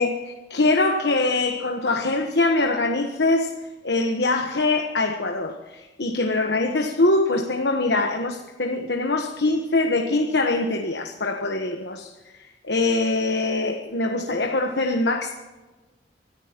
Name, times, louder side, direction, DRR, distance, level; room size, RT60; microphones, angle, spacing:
voice 1, 0.0-3.5 3.8-15.3, left 2 dB, 70° left, 3 dB, 1.3 m, -23 dB
25.5 x 14.0 x 3.0 m, 1.2 s
head